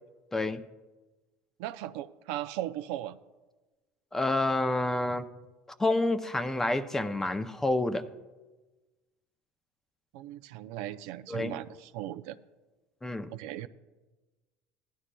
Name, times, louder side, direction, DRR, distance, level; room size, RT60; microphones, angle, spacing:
voice 1, 1.6-3.2 10.1-12.4 13.3-13.7, right 13 dB, 80° right, 11 dB, 0.4 m, -37 dB
voice 2, 4.1-5.2 5.8-8.0 11.3-11.6 13.0-13.3, left 2 dB, 10° left, 9 dB, 0.5 m, -28 dB
16.0 x 11.0 x 2.3 m, 1.2 s
cardioid pair, 135°, 5 cm